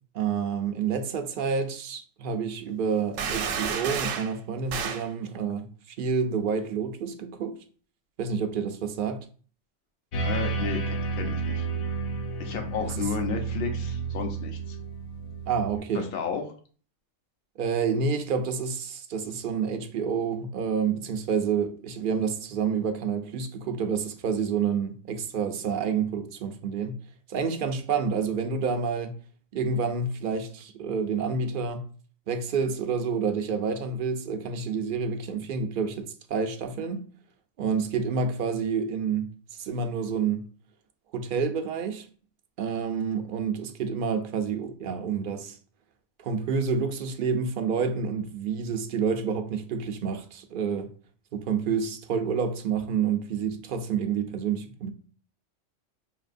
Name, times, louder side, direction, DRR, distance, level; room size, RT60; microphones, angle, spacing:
voice 1, 0.1-7.6 8.2-9.3 12.8-13.0 15.5-16.1 17.6-27.0 27.3-29.1 29.5-31.9 32.3-37.1 37.6-40.5 41.1-42.1 42.6-45.6 46.2-50.9 51.3-54.9, right 6 dB, 60° right, 0.6 m, -28 dB
sound 1, 3.2-4.3 4.7-5.1, right 6 dB, 80° right, 0.9 m, -30 dB
sound 2, 10.1-15.8, right 4 dB, 80° left, 1.0 m, -31 dB
voice 2, 10.2-11.7 12.4-14.8 15.9-16.4, left 6 dB, 55° left, 0.9 m, -33 dB
5.3 x 2.8 x 2.5 m
omnidirectional pair, 1.3 m